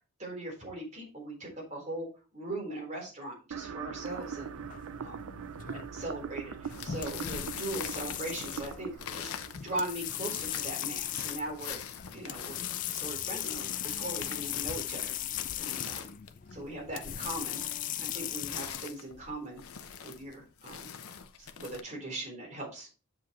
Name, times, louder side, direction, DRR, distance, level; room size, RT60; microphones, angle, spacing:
voice 1, 0.2-2.1 2.3-4.5 5.0-5.3 5.7-9.3 9.6-11.8 12.1-12.6 12.9-16.1 16.5-17.6 17.9-19.6 20.0-20.9 21.4-22.9, right 1 dB, 30° right, -2 dB, 4.0 m, -40 dB
sound 1, 3.5-10.5, right 7 dB, 70° right, 0.4 m, -42 dB
sound 2, 4.1-18.9, left 11 dB, 35° left, 0.3 m, -38 dB
sound 3, 6.7-21.8, left 7 dB, 80° left, 0.8 m, -44 dB
7.6 x 7.3 x 3.1 m, 0.34 s
head